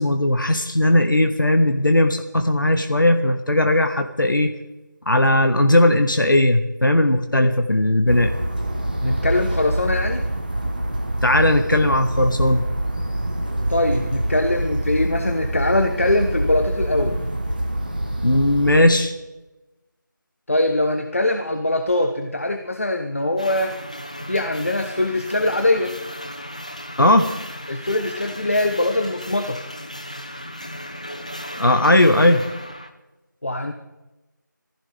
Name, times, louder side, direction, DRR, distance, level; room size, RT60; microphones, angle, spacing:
voice 1, 0.0-4.5 5.0-8.3 11.2-12.6 18.2-19.1 27.0-27.3 31.6-32.4, left 1 dB, 85° left, 6 dB, 1.4 m, -17 dB
sound 1, 8.1-18.8, right 1 dB, 25° right, 1.3 m, -25 dB
voice 2, 9.0-10.2 13.7-17.2 20.5-23.7 24.3-25.9 27.7-29.6 33.4-33.7, left 2 dB, 45° left, 6 dB, 1.0 m, -22 dB
sound 2, 23.4-32.9, equal, 20° left, 0.7 m, -35 dB
22.5 x 15.5 x 3.4 m, 1.0 s
figure-of-eight pair, 175°, 11 cm